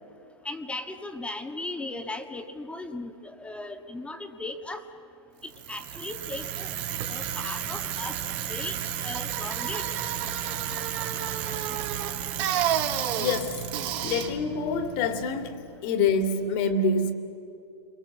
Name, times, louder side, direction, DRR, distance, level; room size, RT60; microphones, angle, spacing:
voice 1, 0.4-3.1 3.4-4.8 5.7-6.7 7.1-8.1 8.5-8.8 9.0-9.8, left 2 dB, 10° left, 1.5 m, -37 dB
Bicycle, 5.5-15.6, right 10 dB, 45° right, 2.4 m, -31 dB
voice 2, 13.2-13.6 14.0-17.1, left 4 dB, 45° left, 2.6 m, -26 dB
30.0 x 23.0 x 7.3 m
hypercardioid pair, 125°, 15 cm